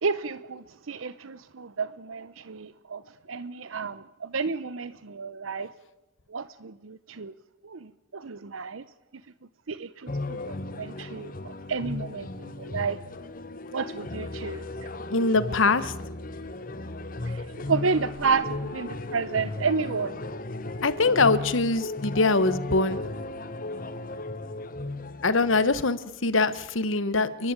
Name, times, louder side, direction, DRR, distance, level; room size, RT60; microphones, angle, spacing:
voice 1, 0.0-3.0 3.3-5.7 6.3-7.3 7.6-8.8 9.7-10.4 10.7-13.0 13.7-14.6 17.2-20.2, right 5 dB, 80° right, 15 dB, 0.7 m, -31 dB
sound 1, 10.1-25.9, left 2 dB, 45° left, 1.1 m, -36 dB
voice 2, 15.1-15.9 20.8-23.0 25.2-27.5, left 3 dB, 75° left, 14 dB, 1.1 m, -23 dB
30.0 x 12.0 x 8.8 m, 1.0 s
head